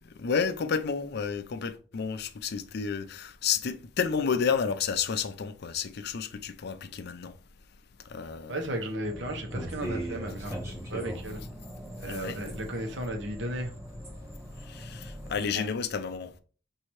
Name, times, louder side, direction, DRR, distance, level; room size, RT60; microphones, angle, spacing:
voice 1, 0.2-7.3 8.1-8.6 12.1-12.4 14.7-16.4, left 6 dB, 60° left, 0.4 m, -31 dB
voice 2, 8.5-11.4 12.0-13.7 15.4-15.7, right 1 dB, 70° right, 1.0 m, -35 dB
sound 1, 9.0-15.5, right 1 dB, 15° right, 1.1 m, -39 dB
5.4 x 2.7 x 3.1 m
head